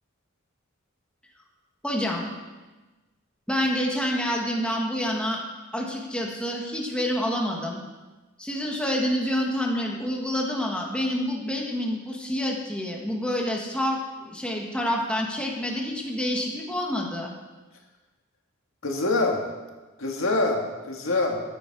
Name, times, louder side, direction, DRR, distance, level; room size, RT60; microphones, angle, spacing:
voice 1, 1.8-2.3 3.5-5.4 5.7-7.8 8.4-17.3, equal, 5° left, -1 dB, 1.8 m, -28 dB
voice 2, 18.8-19.4 20.0-21.4, left 2 dB, 75° left, 1 dB, 2.0 m, -25 dB
14.0 x 10.5 x 4.8 m, 1.2 s
head